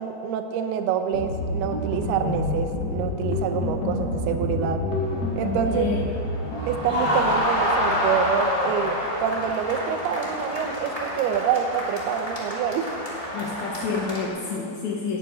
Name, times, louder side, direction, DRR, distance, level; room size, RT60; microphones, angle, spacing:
voice 1, 0.0-4.8 5.4-5.9 6.7-12.9, right 8 dB, 80° right, 7 dB, 2.6 m, -27 dB
sound 1, 1.1-10.6, left 2 dB, 45° left, 1.3 m, -30 dB
sound 2, 4.9-14.3, equal, 15° left, 1.2 m, -28 dB
voice 2, 5.7-6.0 13.3-15.2, left 5 dB, 70° left, -3 dB, 1.8 m, -29 dB
11.5 x 7.5 x 9.3 m, 2.6 s
omnidirectional pair, 4.9 m